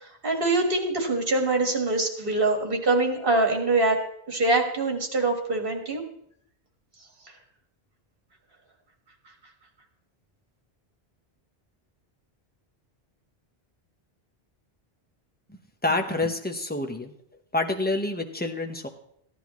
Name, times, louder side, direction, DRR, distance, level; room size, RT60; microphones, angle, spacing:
voice 1, 0.0-4.0 4.3-6.0, right 2 dB, 60° right, 3 dB, 1.9 m, -24 dB
voice 2, 15.5-17.1 17.5-18.9, left 2 dB, 10° left, 5 dB, 0.8 m, -28 dB
15.0 x 10.5 x 3.1 m, 0.71 s
omnidirectional pair, 1.0 m